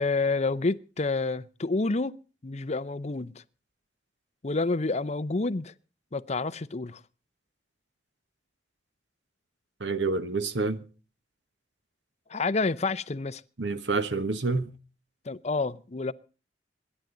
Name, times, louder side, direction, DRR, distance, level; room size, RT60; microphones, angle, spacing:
voice 1, 0.0-2.2 2.4-3.4 4.4-5.7 6.1-7.0 12.3-13.4 15.3-16.1, left 3 dB, 40° left, 0.7 m, -28 dB
voice 2, 9.8-10.8 13.6-14.7, right 3 dB, 80° right, 1.4 m, -28 dB
26.5 x 11.0 x 3.9 m
head